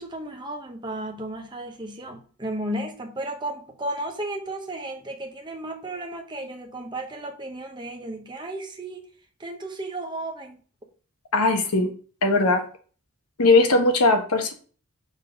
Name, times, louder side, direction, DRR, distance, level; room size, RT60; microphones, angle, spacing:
voice 1, 0.0-9.1 9.4-10.6, right 1 dB, 20° right, 0.9 m, -34 dB
voice 2, 11.3-11.9 12.2-12.6 13.4-14.5, left 2 dB, 85° left, 1.2 m, -19 dB
5.5 x 3.7 x 4.9 m
head